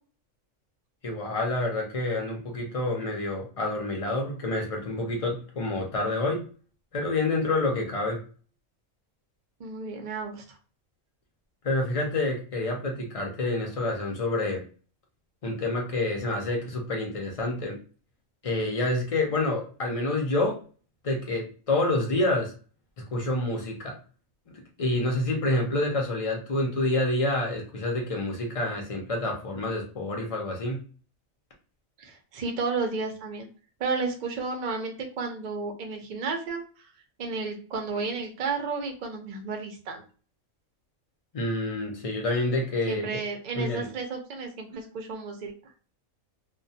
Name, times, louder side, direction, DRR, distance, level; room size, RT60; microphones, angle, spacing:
voice 1, 1.0-6.4 6.9-8.2 11.6-14.6 15.4-17.8 18.4-20.6 21.0-22.5 23.1-24.0 24.8-30.8 41.3-43.1 43.5-43.9, left 2 dB, 55° left, 1 dB, 0.3 m, -28 dB
voice 2, 9.6-10.6 32.0-33.5 33.8-36.6 37.2-40.0 42.9-45.5, right 4 dB, 55° right, 3 dB, 0.5 m, -32 dB
2.2 x 2.1 x 2.6 m, 0.38 s
omnidirectional pair, 1.4 m